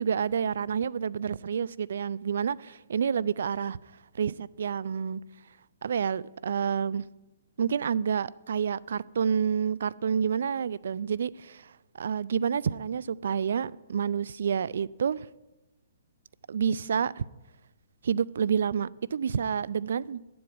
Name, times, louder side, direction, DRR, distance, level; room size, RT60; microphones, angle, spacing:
voice 1, 0.0-3.8 4.2-5.2 5.8-7.1 7.6-15.3 16.5-17.2 18.0-20.2, right 7 dB, 70° right, 0.4 m, -29 dB
9.5 x 7.7 x 8.6 m
hypercardioid pair, 150°, 0 cm